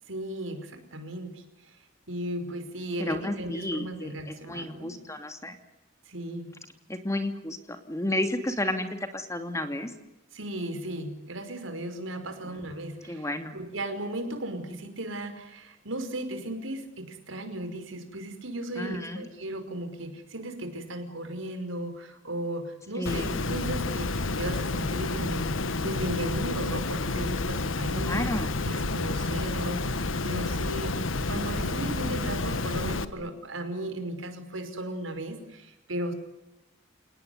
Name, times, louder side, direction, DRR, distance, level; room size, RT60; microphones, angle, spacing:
voice 1, 0.1-1.8 2.1-4.9 6.1-6.5 10.3-13.3 13.5-28.3 28.6-36.1, right 1 dB, 85° right, 7 dB, 5.4 m, -36 dB
voice 2, 3.0-5.6 6.9-9.9 12.4-12.6 13.1-13.6 18.8-19.2 23.0-23.4 27.9-28.5, left 1 dB, 15° left, 7 dB, 2.8 m, -32 dB
Water, 23.1-33.1, left 3 dB, 90° left, 1.5 m, -30 dB
29.5 x 19.0 x 9.6 m, 0.96 s
head